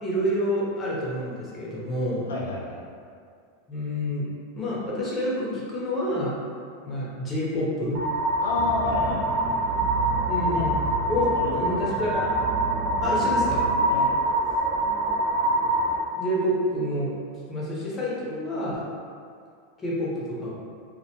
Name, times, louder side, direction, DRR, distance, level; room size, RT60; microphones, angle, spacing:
voice 1, 0.0-2.2 3.7-4.3 4.6-6.4 6.8-8.0 10.3-10.8 11.1-12.3 13.0-13.6 16.1-18.8 19.8-20.5, equal, 20° left, -7 dB, 0.8 m, -28 dB
voice 2, 2.3-2.8 8.4-9.4 10.5-10.6 11.2-11.7 13.9-14.1, left 2 dB, 90° left, -3 dB, 0.4 m, -31 dB
sound 1, 7.9-16.0, right 1 dB, 45° right, 0.5 m, -25 dB
sound 2, 8.5-13.9, right 4 dB, 20° right, 0.8 m, -34 dB
2.3 x 2.1 x 2.8 m, 2.3 s
hypercardioid pair, 115°, 0 cm